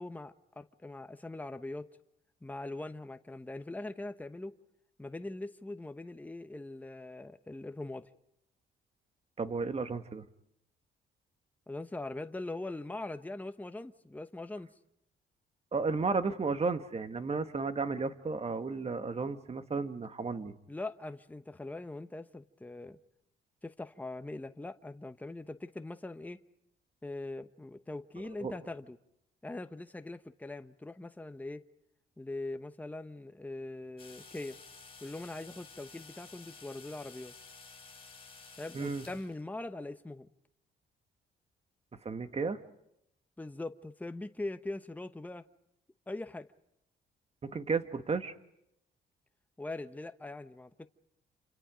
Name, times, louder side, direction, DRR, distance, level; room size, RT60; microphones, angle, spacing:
voice 1, 0.0-1.9 2.4-4.5 5.0-8.1 11.7-14.7 20.7-23.0 23.6-26.4 27.0-29.0 29.4-31.6 32.2-34.6 35.0-37.3 38.6-40.3 43.4-45.4 46.1-46.5 49.6-50.9, left 2 dB, 10° left, 1.0 m, -41 dB
voice 2, 9.4-10.2 15.7-20.5 28.4-28.5 38.7-39.0 42.0-42.6 47.4-48.3, right 4 dB, 30° right, 1.7 m, -33 dB
sound 1, 34.0-39.4, left 4 dB, 30° left, 8.0 m, -52 dB
28.5 x 27.0 x 5.1 m
cardioid pair, 90°, 20 cm